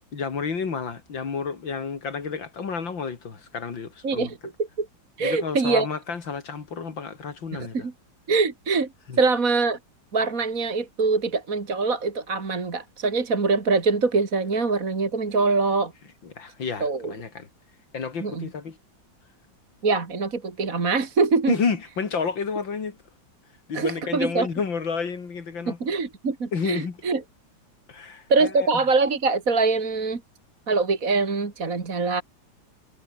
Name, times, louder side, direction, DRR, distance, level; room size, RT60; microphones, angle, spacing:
voice 1, 0.1-4.3 5.2-7.9 9.1-9.2 16.2-17.5 17.9-18.8 21.5-23.0 23.7-25.8 26.5-27.0 27.9-28.7, left 5 dB, 85° left, 3.5 m, -30 dB
voice 2, 4.0-4.4 4.8-4.9 5.2-5.9 7.5-7.9 8.3-8.9 9.2-9.8 10.1-15.9 16.8-17.1 18.2-18.5 19.8-21.5 23.7-24.5 25.7-27.2 28.3-30.2 30.7-32.2, right 4 dB, 45° right, 2.8 m, -23 dB
omnidirectional pair, 2.0 m